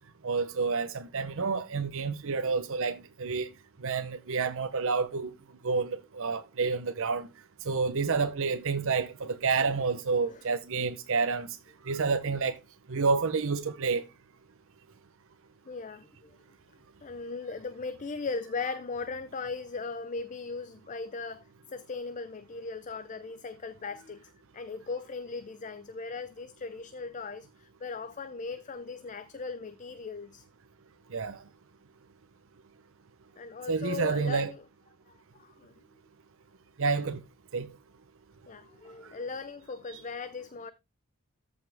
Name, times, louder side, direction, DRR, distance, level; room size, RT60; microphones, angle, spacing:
voice 1, 0.2-3.5 3.8-5.3 5.6-7.3 7.6-11.5 11.8-12.6 12.9-14.1 31.1-31.4 33.7-34.5 36.8-37.2 37.5-37.7 39.9-40.0, right 4 dB, 65° right, 0.7 m, -29 dB
voice 2, 15.7-16.3 17.0-21.4 21.7-30.4 33.4-34.6 35.3-35.7 38.5-40.7, left 4 dB, 35° left, 0.6 m, -38 dB
14.0 x 5.4 x 3.5 m
head